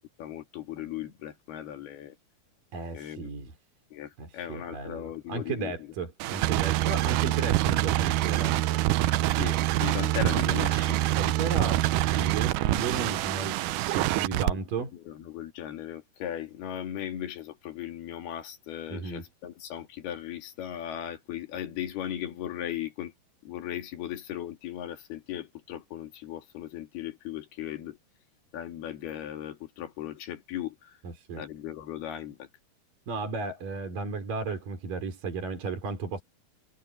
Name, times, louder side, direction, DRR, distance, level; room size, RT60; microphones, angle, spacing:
voice 1, 0.2-2.2 2.9-3.3 3.9-5.7 9.3-11.0 14.3-14.4 14.9-23.1 23.5-28.0 28.5-30.9 31.4-32.5, left 11 dB, 75° left, 4.2 m, -37 dB
voice 2, 2.7-3.5 4.2-8.6 11.1-13.6 13.9-14.9 18.9-19.2 31.0-31.4 33.1-36.2, right 4 dB, 60° right, 5.7 m, -34 dB
sound 1, 6.2-14.5, right 15 dB, 85° right, 1.8 m, -25 dB
omnidirectional pair, 4.5 m